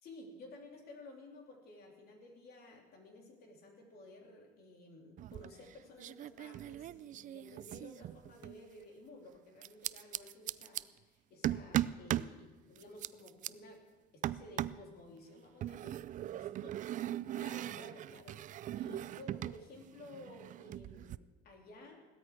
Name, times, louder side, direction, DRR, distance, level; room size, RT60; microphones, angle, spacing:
voice 1, 0.0-13.8 14.1-16.5 17.4-18.4 18.8-22.0, left 2 dB, 65° left, 1 dB, 3.1 m, -54 dB
sound 1, 5.2-5.7 6.0-8.6 9.6-10.8 11.4-12.3 12.8-13.5 14.2-14.9 15.6-19.6 19.9-21.2, right 12 dB, 50° right, 0.4 m, -39 dB
16.5 x 13.0 x 4.7 m, 1.1 s
cardioid pair, 110°, 17 cm